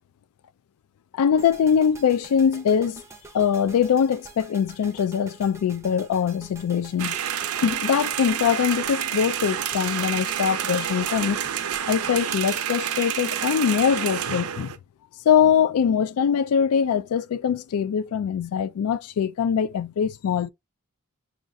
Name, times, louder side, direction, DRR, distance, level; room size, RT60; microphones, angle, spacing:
voice 1, 1.1-3.0 3.3-7.2 7.6-11.4 11.8-14.7 15.3-20.5, left 7 dB, 75° left, 0.3 m, -22 dB
sound 1, 1.4-13.6, right 3 dB, 15° right, 0.5 m, -47 dB
sound 2, 7.0-14.8, right 9 dB, 75° right, 0.5 m, -28 dB
6.3 x 2.4 x 2.5 m
head